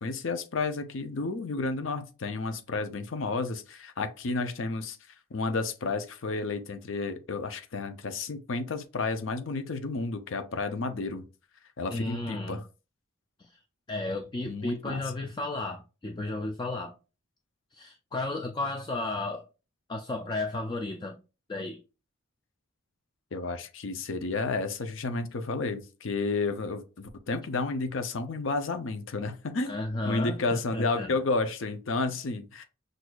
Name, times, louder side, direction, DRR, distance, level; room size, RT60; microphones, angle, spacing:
voice 1, 0.0-5.0 5.3-11.2 11.8-12.6 14.5-15.0 23.3-29.7 30.0-32.6, left 3 dB, 70° left, 0.6 m, -31 dB
voice 2, 11.9-12.6 13.4-13.5 13.9-16.9 17.7-19.4 19.9-21.2 21.5-21.8 29.7-31.1, left 2 dB, 20° left, 0.3 m, -33 dB
6.0 x 2.6 x 2.3 m
head